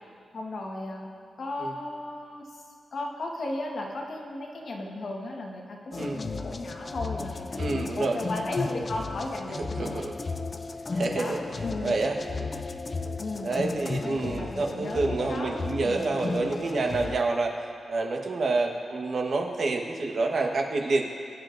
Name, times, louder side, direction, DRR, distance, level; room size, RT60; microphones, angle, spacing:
voice 1, 0.3-1.1 1.4-2.6 2.9-10.0 10.8-11.9 13.2-13.5 14.0-16.1, left 2 dB, 50° left, 0 dB, 1.3 m, -35 dB
sound 1, 5.9-17.2, left 3 dB, 30° left, 0.4 m, -34 dB
voice 2, 7.6-8.2 9.7-10.1 10.9-12.5 13.4-17.5 17.9-21.0, right 3 dB, 50° right, 1 dB, 1.1 m, -28 dB
22.0 x 10.0 x 2.6 m, 2.3 s
wide cardioid pair, 175°, 0 cm